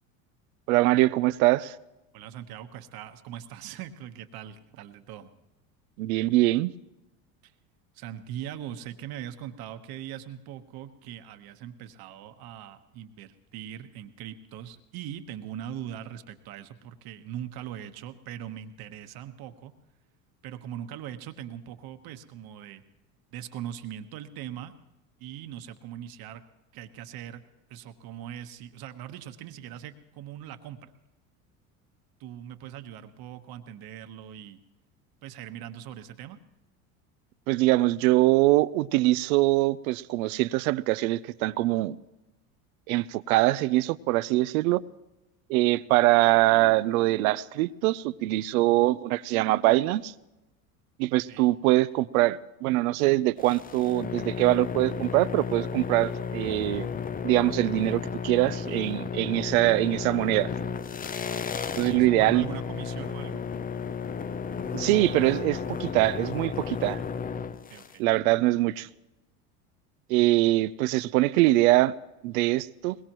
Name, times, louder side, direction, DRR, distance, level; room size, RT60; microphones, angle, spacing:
voice 1, 0.7-1.7 6.0-6.7 37.5-42.0 42.9-44.8 45.5-50.1 51.0-56.9 57.2-60.5 61.8-62.5 64.7-67.0 68.0-68.9 70.1-71.9 72.2-73.0, right 18 dB, 80° right, 0.6 m, -23 dB
voice 2, 2.1-5.3 7.4-7.5 7.9-19.7 20.4-22.8 23.3-24.7 25.2-26.4 26.7-27.4 27.7-30.9 32.2-34.6 35.2-36.4 51.3-51.5 61.8-63.4 67.7-68.0, right 10 dB, 55° right, 1.3 m, -41 dB
sound 1, 53.4-68.0, left 6 dB, 20° left, 0.5 m, -33 dB
22.5 x 20.5 x 3.0 m
supercardioid pair, 90°, 42 cm